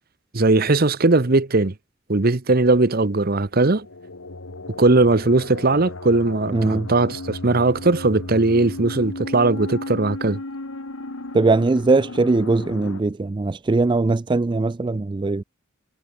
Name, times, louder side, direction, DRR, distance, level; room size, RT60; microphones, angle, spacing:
voice 1, 0.3-1.7 2.1-3.9 4.8-10.4, right 2 dB, 45° right, 1.0 m, -19 dB
sound 1, 3.7-13.0, left 2 dB, 80° left, 1.8 m, -35 dB
voice 2, 6.5-6.9 11.3-15.4, right 3 dB, 20° right, 0.3 m, -20 dB
head